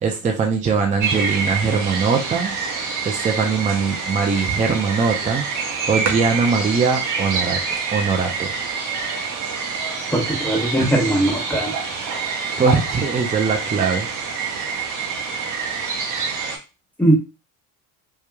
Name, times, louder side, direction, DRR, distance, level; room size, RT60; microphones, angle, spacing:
voice 1, 0.0-2.5 3.0-5.5 5.9-7.6 7.9-8.5 10.8-10.9 12.6-14.1, right 5 dB, 20° right, 3 dB, 0.4 m, -21 dB
sound 1, 1.0-16.6, right 5 dB, 45° right, 0.8 m, -26 dB
voice 2, 10.1-11.7 17.0-17.1, right 1 dB, 5° left, -2 dB, 1.1 m, -19 dB
2.9 x 2.2 x 2.2 m, 0.29 s
hypercardioid pair, 70°, 43 cm